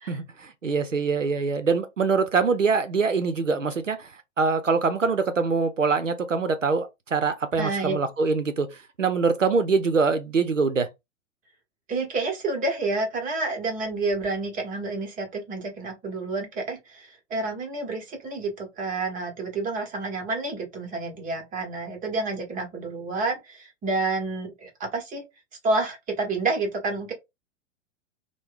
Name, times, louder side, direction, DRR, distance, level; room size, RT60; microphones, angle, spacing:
voice 1, 0.1-10.9, right 4 dB, 90° right, 0.7 m, -24 dB
voice 2, 7.6-8.0 11.9-25.2 25.6-27.1, right 3 dB, 20° right, 1.1 m, -29 dB
3.0 x 2.2 x 3.7 m
figure-of-eight pair, 100°, 37 cm